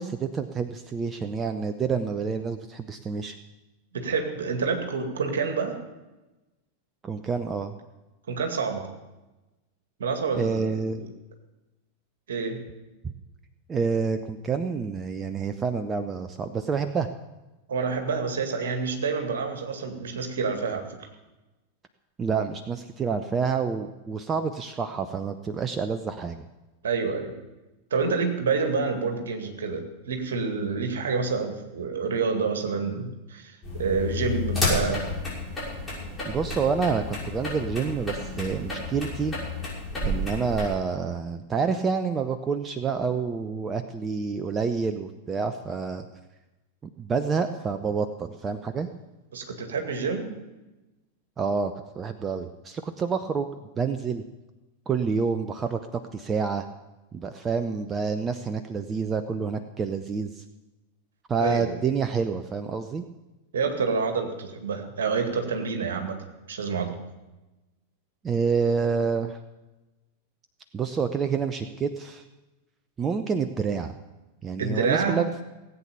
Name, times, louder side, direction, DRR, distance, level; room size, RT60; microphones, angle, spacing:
voice 1, 0.0-3.4 7.0-7.7 10.3-11.0 13.0-13.1 13.7-17.1 22.2-26.4 36.3-39.4 40.1-46.0 47.0-48.9 51.4-53.5 53.8-54.2 54.9-56.7 57.1-60.4 61.3-63.0 68.2-69.4 70.7-72.2 73.0-74.0 74.4-75.3, right 5 dB, 20° right, 9 dB, 0.7 m, -28 dB
voice 2, 3.9-5.8 8.3-8.9 10.0-11.1 12.3-12.6 17.7-20.9 26.8-27.3 27.9-35.1 49.3-50.3 61.4-61.8 63.5-66.2 66.5-67.0 74.6-75.2, right 5 dB, 65° right, 5 dB, 2.1 m, -28 dB
sound 1, 33.6-40.8, left 2 dB, 15° left, 6.1 m, -31 dB
17.5 x 8.4 x 6.9 m, 1.1 s
figure-of-eight pair, 90°, 0 cm